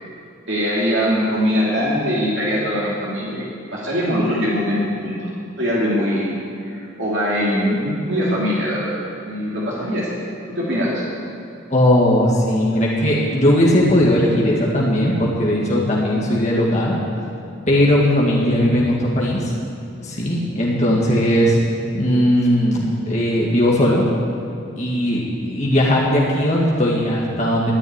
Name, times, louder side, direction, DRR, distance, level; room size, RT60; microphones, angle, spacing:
voice 1, 0.5-5.3 5.6-6.4 6.7-10.2 10.5-11.0, equal, 60° right, -7 dB, 2.9 m, -22 dB
voice 2, 11.7-17.0 17.7-19.5 20.0-21.6 21.9-24.1 24.8-27.7, left 1 dB, 35° left, -4 dB, 1.8 m, -18 dB
13.0 x 11.0 x 9.6 m, 2.5 s
head